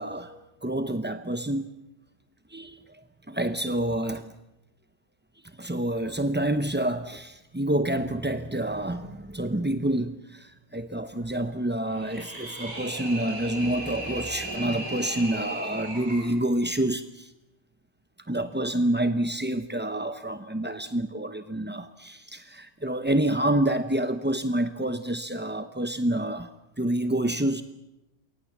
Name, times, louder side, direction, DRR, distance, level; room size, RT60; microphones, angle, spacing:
voice 1, 0.0-1.7 2.5-3.0 3.3-4.3 5.6-17.3 18.3-26.5 26.8-27.6, right 1 dB, 10° right, 0.5 m, -28 dB
sound 1, 11.9-16.3, right 1 dB, 75° right, 6.0 m, -36 dB
27.5 x 24.0 x 7.3 m
omnidirectional pair, 1.6 m